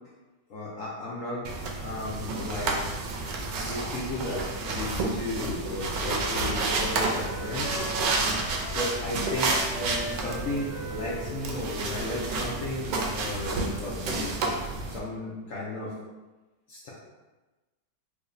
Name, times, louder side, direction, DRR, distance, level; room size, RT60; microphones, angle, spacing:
voice 1, 0.5-1.5 1.8-2.8 3.6-8.2 8.7-14.3 14.9-15.9 16.7-16.9, left 2 dB, 65° left, -6 dB, 0.8 m, -34 dB
sound 1, 1.4-15.0, right 3 dB, 85° right, 1.2 m, -30 dB
Wind instrument woodwind instrument, 6.7-13.2, equal, 65° right, 0.9 m, -41 dB
4.8 x 2.2 x 2.5 m, 1.2 s
omnidirectional pair, 1.9 m